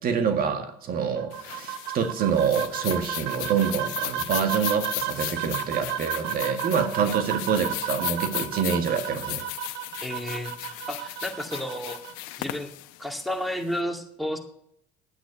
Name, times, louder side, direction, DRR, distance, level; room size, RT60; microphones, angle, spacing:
voice 1, 0.0-9.4, right 7 dB, 55° right, 6 dB, 1.9 m, -26 dB
sound 1, 1.2-12.1, right 11 dB, 80° right, 1.0 m, -33 dB
sound 2, 1.3-13.8, left 17 dB, 90° left, 1.0 m, -36 dB
voice 2, 10.0-12.0 12.4-12.7 13.0-14.4, equal, ahead, 4 dB, 2.3 m, -32 dB
11.5 x 9.4 x 8.3 m, 0.74 s
supercardioid pair, 90°, 18 cm